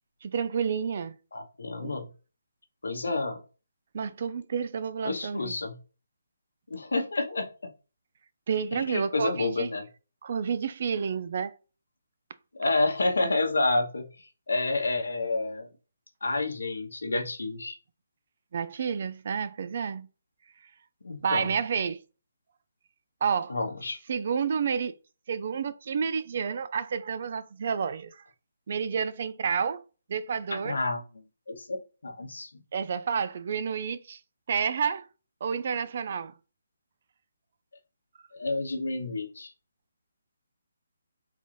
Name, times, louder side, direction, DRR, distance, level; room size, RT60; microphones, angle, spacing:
voice 1, 0.2-1.1 1.8-2.0 3.9-5.6 8.5-9.7 10.2-11.5 18.5-20.1 21.2-22.0 23.2-23.6 24.1-24.9 25.3-28.2 28.7-29.8 30.1-30.8 32.7-34.2 34.5-35.0 35.4-36.3, right 6 dB, 50° right, 0.3 m, -30 dB
voice 2, 1.3-2.1 2.8-3.4 5.0-5.8 6.7-7.7 8.7-9.8 12.6-14.0 14.5-15.7 16.2-17.8 21.0-21.5 23.5-24.0 30.5-32.5 38.3-39.5, left 2 dB, 85° left, 0.9 m, -29 dB
3.8 x 2.5 x 3.1 m
hypercardioid pair, 160°, 0 cm